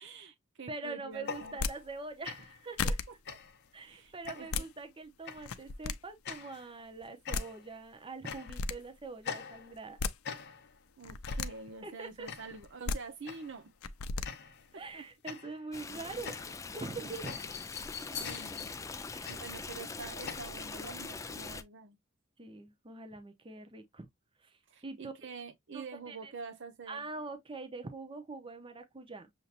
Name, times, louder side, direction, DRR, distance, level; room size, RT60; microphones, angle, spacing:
voice 1, 0.0-1.6 3.1-3.4 3.8-4.7 11.0-13.7 14.7-15.0 17.0-17.1 18.1-22.0 24.7-27.0, right 4 dB, 60° right, 0.8 m, -47 dB
voice 2, 0.7-3.0 3.3-3.4 3.7-10.0 11.8-12.3 14.7-17.4 19.1-19.4 22.4-24.1 24.4-25.1 25.7-26.3 26.9-29.5, right 3 dB, 25° right, 0.7 m, -44 dB
sound 1, 1.1-2.0 2.2-2.7 3.3-3.7 4.3-4.7 5.3-5.6 6.3-6.7 7.3-7.8 8.2-8.8 9.2-9.9 10.2-10.8 11.3-11.7 12.3-12.7 13.3-13.6 14.2-14.7 15.3-20.4, left 6 dB, 55° left, 0.7 m, -44 dB
sound 2, 1.4-1.7 2.4-2.5 2.8-3.0 4.2-4.7 5.4-5.9 7.0-7.1 7.3-7.5 8.3-8.7 9.7-10.1 11.0-11.5 12.6-13.0 13.8-14.3, left 4 dB, 85° left, 0.5 m, -33 dB
Stream, 15.7-21.6, left 4 dB, 15° left, 0.3 m, -42 dB
6.6 x 2.8 x 2.5 m
head